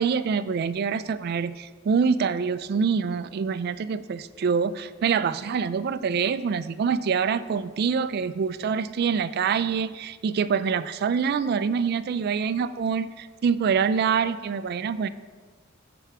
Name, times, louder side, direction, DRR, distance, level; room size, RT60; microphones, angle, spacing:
voice 1, 0.0-15.1, right 6 dB, 50° right, 13 dB, 0.3 m, -25 dB
14.0 x 4.7 x 3.4 m, 1.5 s
head